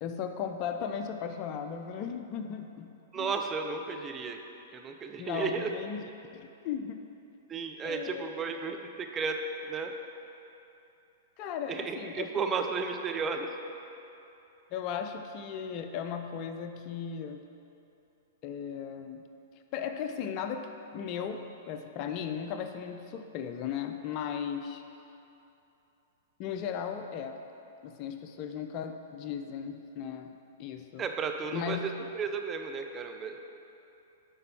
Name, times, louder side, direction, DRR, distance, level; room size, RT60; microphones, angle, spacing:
voice 1, 0.0-3.3 5.2-6.0 6.3-7.0 7.8-8.3 11.4-12.3 14.7-17.4 18.4-19.2 19.7-24.8 26.4-27.4 27.8-31.0 31.5-31.8, left 7 dB, 40° left, 7 dB, 0.5 m, -36 dB
voice 2, 3.1-4.4 4.7-5.7 7.5-9.4 9.7-10.0 11.7-13.5 31.0-33.4, right 5 dB, 20° right, 4 dB, 0.6 m, -33 dB
9.9 x 5.3 x 4.2 m, 2.9 s
figure-of-eight pair, 105°, 0 cm